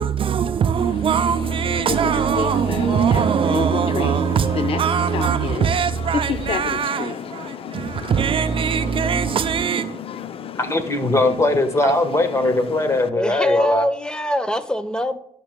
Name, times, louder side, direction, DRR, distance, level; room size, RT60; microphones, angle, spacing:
voice 1, 0.0-10.0 11.8-12.0, right 7 dB, 50° right, 0.4 m, -21 dB
sound 1, 0.8-13.1, left 7 dB, 55° left, 0.5 m, -31 dB
voice 2, 10.6-13.9, left 2 dB, 25° left, 1.2 m, -20 dB
voice 3, 13.1-15.2, equal, 5° left, 0.8 m, -22 dB
13.5 x 6.0 x 2.2 m
cardioid pair, 85°, 11 cm